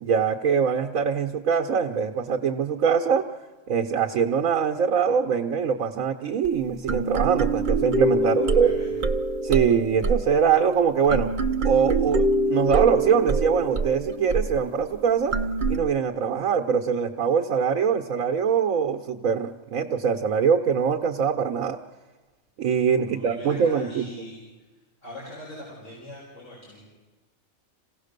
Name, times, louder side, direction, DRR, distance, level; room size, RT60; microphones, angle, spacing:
voice 1, 0.0-3.2 3.7-8.7 9.4-11.3 11.6-12.2 12.5-15.3 15.7-21.8 22.6-24.0, right 6 dB, 80° right, 1 dB, 1.3 m, -23 dB
sound 1, 6.4-6.5 6.9-15.8, right 3 dB, 40° right, 0.8 m, -25 dB
voice 2, 8.4-9.0 23.0-24.7 25.0-26.8, left 1 dB, 65° left, -6 dB, 5.5 m, -42 dB
27.0 x 17.0 x 6.6 m, 1.3 s
omnidirectional pair, 1.4 m